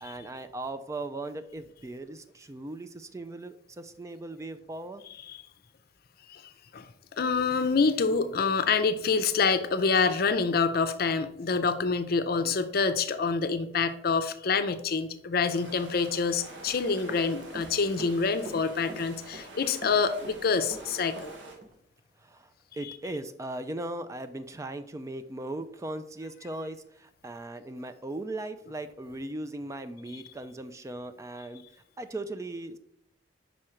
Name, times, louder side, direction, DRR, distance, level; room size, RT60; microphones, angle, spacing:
voice 1, 0.0-5.0 12.4-12.6 22.2-31.6 32.0-32.8, right 2 dB, 15° right, 10 dB, 0.3 m, -38 dB
voice 2, 7.1-21.3 22.9-23.0, left 5 dB, 55° left, 10 dB, 0.5 m, -26 dB
sound 1, 15.5-21.6, right 2 dB, 90° right, 1.4 m, -47 dB
Run, 16.7-17.7 18.0-19.5 19.8-21.3 21.6-21.7, right 1 dB, 45° right, 0.7 m, -44 dB
5.3 x 4.4 x 4.9 m, 0.74 s
head